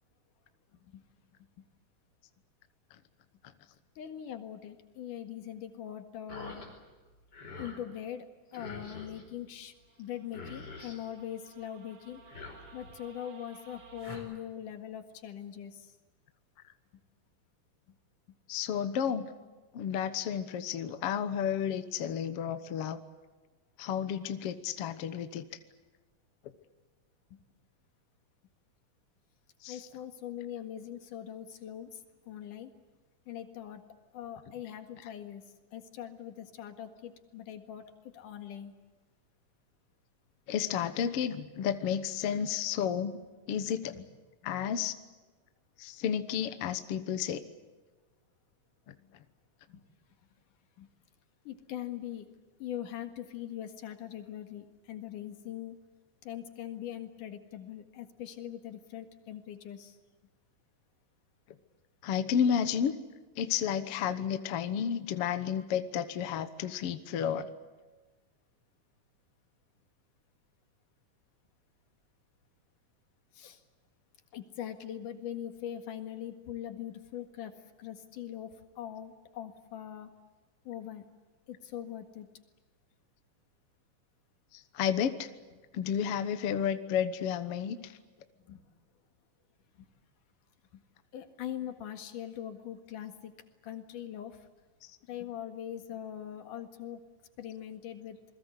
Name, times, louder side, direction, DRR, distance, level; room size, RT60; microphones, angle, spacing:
voice 1, 4.0-6.6 7.6-12.2 12.7-15.9 17.9-18.0 27.3-27.4 29.7-32.7 33.3-33.8 34.1-35.5 35.7-38.7 43.8-44.0 44.4-44.6 49.7-49.8 50.8-50.9 51.4-52.3 52.6-55.8 56.2-60.0 73.3-73.6 74.3-77.5 77.8-78.5 78.8-80.1 80.6-81.0 81.5-82.3 88.4-88.6 89.8-89.9 90.7-90.8 91.1-93.3 93.6-94.5 95.0-97.0 97.4-98.2, left 10 dB, 75° left, 7 dB, 3.3 m, -42 dB
sound 1, 6.3-6.7 7.1-7.8 8.5-9.2 10.0-10.1 10.3-11.0 12.1-13.0 13.7-14.2, left 3 dB, 30° left, 5.3 m, -46 dB
sound 2, 9.7-14.2, right 4 dB, 55° right, 4.4 m, -55 dB
voice 2, 18.5-19.3 19.7-23.0 23.8-25.5 29.6-29.9 40.5-43.1 43.5-43.9 44.4-44.9 45.8-47.4 62.0-62.9 63.4-67.5 84.5-85.3 85.7-87.9, left 8 dB, 60° left, 10 dB, 1.8 m, -31 dB
28.0 x 21.5 x 8.1 m, 1.3 s
omnidirectional pair, 3.7 m